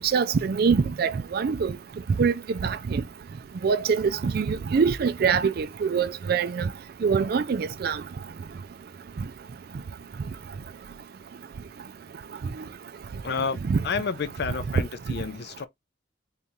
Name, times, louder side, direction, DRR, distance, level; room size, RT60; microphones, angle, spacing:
voice 1, 0.1-1.7 2.2-2.3 2.6-3.0 3.6-6.7 7.0-8.0 13.7-13.8, right 5 dB, 55° right, 0.4 m, -24 dB
voice 2, 13.2-13.6 13.8-15.7, left 5 dB, 60° left, 0.5 m, -30 dB
4.0 x 2.8 x 3.6 m
head